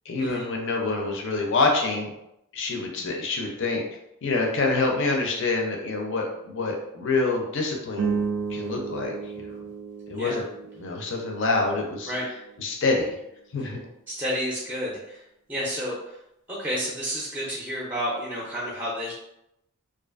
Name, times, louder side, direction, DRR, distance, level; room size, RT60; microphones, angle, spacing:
voice 1, 0.1-2.1 2.5-3.8 4.2-8.2 8.5-9.6 10.1-10.4 10.8-12.1 12.6-13.1 13.5-13.8, left 3 dB, 55° left, 1 dB, 0.5 m, -26 dB
sound 1, 7.9-12.4, right 5 dB, 70° right, 0.3 m, -33 dB
voice 2, 14.1-15.2 15.5-16.2 16.5-19.1, equal, 10° right, -5 dB, 0.4 m, -30 dB
2.5 x 2.4 x 2.4 m, 0.83 s
head